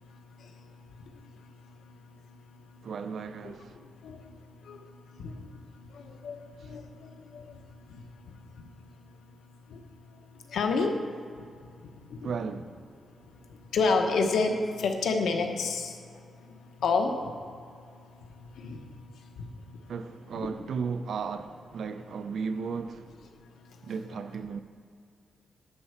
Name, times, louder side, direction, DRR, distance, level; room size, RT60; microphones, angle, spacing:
voice 1, 2.8-3.7 12.2-12.8 19.9-23.1 23.8-24.6, right 5 dB, 70° right, 0.6 m, -35 dB
voice 2, 6.6-7.1 7.9-8.0 9.7-9.8 10.5-10.9 12.2-12.3 13.7-15.9 16.8-17.1 18.6-18.8 20.3-20.5, left 4 dB, 90° left, 1.1 m, -27 dB
11.5 x 4.4 x 8.2 m
wide cardioid pair, 130°, 0 cm